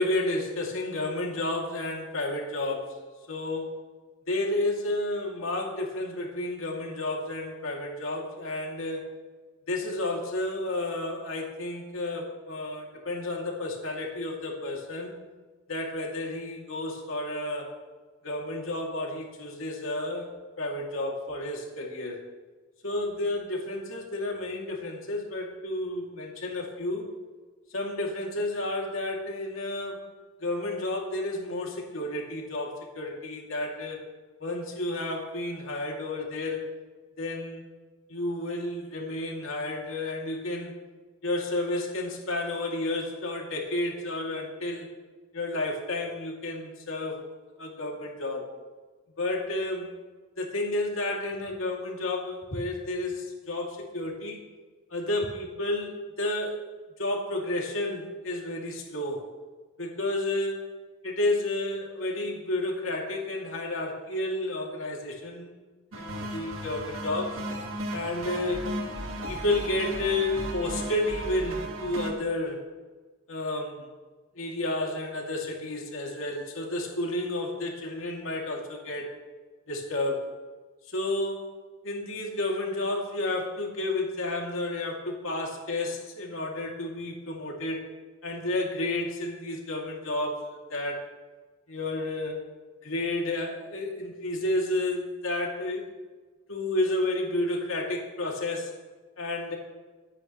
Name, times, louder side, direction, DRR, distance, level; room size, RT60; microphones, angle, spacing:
voice 1, 0.0-3.0 3.3-3.8 4.3-9.1 9.7-15.1 15.7-17.7 18.2-20.3 20.6-22.2 22.8-27.1 27.7-30.1 30.4-34.1 34.4-36.7 37.2-37.6 38.1-40.7 41.2-44.9 45.3-47.2 47.6-48.5 49.2-49.9 50.4-54.4 54.9-56.6 57.0-59.2 59.8-60.7 61.0-65.5 66.0-67.4 67.9-68.6 69.3-72.7 73.3-73.9 74.4-79.1 79.7-80.3 80.9-81.5 81.8-87.9 88.2-91.1 91.7-92.5 92.8-95.9 96.5-98.7 99.2-99.6, left 2 dB, 85° left, 0 dB, 2.6 m, -31 dB
sound 1, 65.9-72.1, right 1 dB, 80° right, 2.0 m, -35 dB
23.0 x 9.8 x 3.2 m, 1.3 s
head